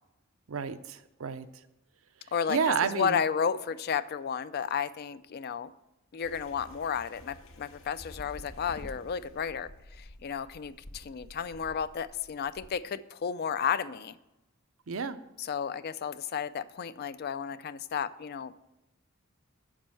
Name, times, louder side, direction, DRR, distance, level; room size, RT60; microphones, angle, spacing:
voice 1, 0.5-1.5 2.5-3.2 14.9-15.2, right 6 dB, 80° right, 11 dB, 0.6 m, -30 dB
voice 2, 2.3-5.7 6.1-9.7 10.0-14.1 15.4-18.6, left 7 dB, 50° left, 15 dB, 0.4 m, -32 dB
sound 1, 6.2-12.7, left 1 dB, 80° left, 1.1 m, -50 dB
7.4 x 5.5 x 7.5 m, 0.92 s
head